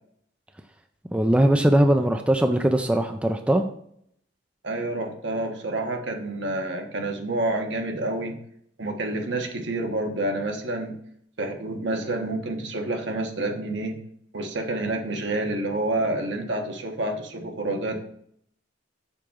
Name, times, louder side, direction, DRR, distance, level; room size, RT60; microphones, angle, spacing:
voice 1, 1.1-3.6, right 1 dB, 5° right, 6 dB, 0.4 m, -20 dB
voice 2, 4.6-8.4 8.8-10.9 11.4-14.0 14.3-18.0, right 2 dB, 70° right, 3 dB, 1.2 m, -28 dB
6.8 x 3.6 x 6.1 m, 0.68 s
head